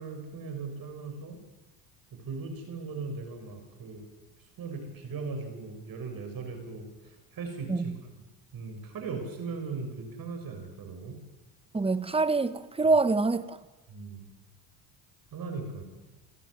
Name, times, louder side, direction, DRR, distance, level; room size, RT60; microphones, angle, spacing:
voice 1, 0.0-1.4 2.1-4.1 4.6-7.9 8.5-11.2 12.8-12.9 13.9-14.3 15.3-15.8, right 4 dB, 50° right, 6.5 m, -38 dB
voice 2, 11.7-13.6, right 3 dB, 10° right, 1.3 m, -25 dB
28.5 x 11.0 x 9.8 m
supercardioid pair, 85°, 46 cm